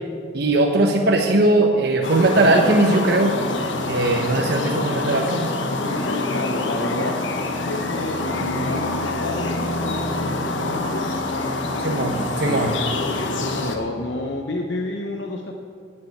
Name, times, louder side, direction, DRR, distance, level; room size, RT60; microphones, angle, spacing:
voice 1, 0.3-3.3 3.9-5.5 11.8-12.7, right 2 dB, 60° right, 1 dB, 1.0 m, -19 dB
sound 1, 2.0-13.8, left 2 dB, 90° left, 1.2 m, -26 dB
voice 2, 5.7-7.2 7.6-11.6 12.4-15.6, left 2 dB, 70° left, 2 dB, 0.9 m, -31 dB
12.0 x 7.6 x 8.5 m, 2.4 s
head